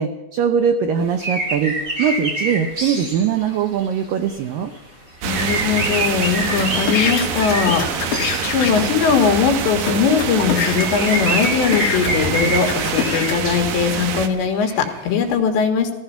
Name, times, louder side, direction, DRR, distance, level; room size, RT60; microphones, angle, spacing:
voice 1, 0.0-4.7, right 7 dB, 85° right, 7 dB, 1.9 m, -21 dB
sound 1, 1.1-4.4 4.7-4.8 5.2-8.9 9.5-9.6 10.3-10.4 10.7-15.3, right 1 dB, 20° right, 3.2 m, -27 dB
voice 2, 5.2-16.0, left 6 dB, 80° left, 5 dB, 3.9 m, -20 dB
sound 2, 5.2-14.3, right 7 dB, 65° right, 2.5 m, -25 dB
sound 3, 6.5-9.0 9.6-9.7 9.9-13.4, left 7 dB, 55° left, 3.6 m, -25 dB
15.5 x 15.5 x 5.8 m, 1.1 s
omnidirectional pair, 5.1 m